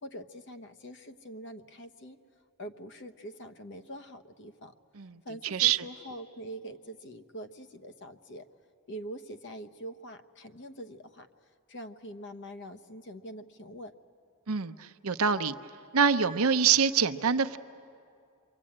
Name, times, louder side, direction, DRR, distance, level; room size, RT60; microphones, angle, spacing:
voice 1, 0.0-2.2 2.6-4.7 5.2-8.5 8.9-11.3 11.7-13.9, right 1 dB, 55° left, 9 dB, 1.1 m, -44 dB
voice 2, 14.5-15.5 15.9-17.6, right 6 dB, 70° right, 10 dB, 0.8 m, -25 dB
28.0 x 24.0 x 8.8 m, 2.3 s
head